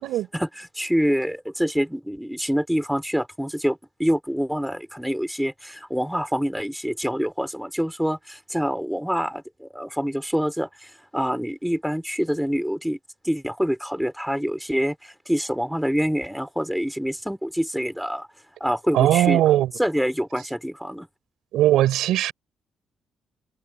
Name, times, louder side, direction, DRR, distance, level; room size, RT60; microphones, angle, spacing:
voice 1, 0.3-13.0 13.2-18.3 18.6-19.4 19.8-21.1, equal, ahead, 5.4 m, -26 dB
voice 2, 18.9-19.7 21.5-22.3, right 13 dB, 85° right, 5.9 m, -19 dB
open air
cardioid pair, 90°, 0 cm